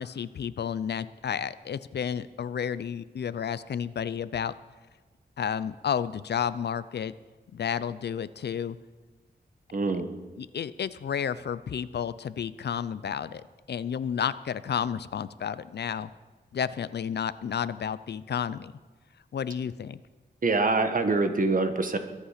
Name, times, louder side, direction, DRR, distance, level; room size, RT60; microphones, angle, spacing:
voice 1, 0.0-4.5 5.4-7.1 7.5-8.8 10.4-16.1 16.5-18.7 19.3-20.0, left 8 dB, 75° left, 16 dB, 0.6 m, -31 dB
voice 2, 9.7-10.1 20.4-22.0, right 3 dB, 50° right, 7 dB, 1.4 m, -25 dB
22.5 x 8.5 x 5.9 m, 1.3 s
wide cardioid pair, 100°, 17 cm